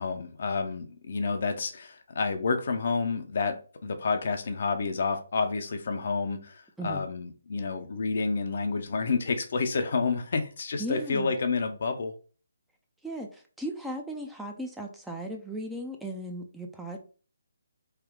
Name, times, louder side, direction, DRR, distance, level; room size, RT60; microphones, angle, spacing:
voice 1, 0.0-12.1, left 4 dB, 55° left, 0.6 m, -29 dB
voice 2, 10.8-11.3 13.0-17.0, right 1 dB, 5° right, 0.4 m, -36 dB
3.2 x 2.3 x 3.7 m
figure-of-eight pair, 150°, 0 cm